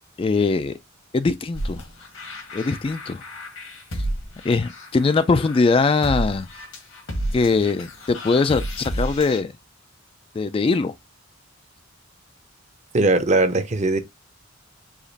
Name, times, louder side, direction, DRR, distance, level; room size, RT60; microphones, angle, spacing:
voice 1, 0.2-0.8 1.1-1.8 2.5-3.2 4.4-6.5 7.3-9.5 10.3-10.9, left 4 dB, 25° left, 0.3 m, -21 dB
sound 1, 1.5-9.4, equal, 85° left, 1.8 m, -31 dB
voice 2, 12.9-14.0, right 2 dB, 35° right, 0.7 m, -19 dB
5.0 x 2.4 x 4.0 m
head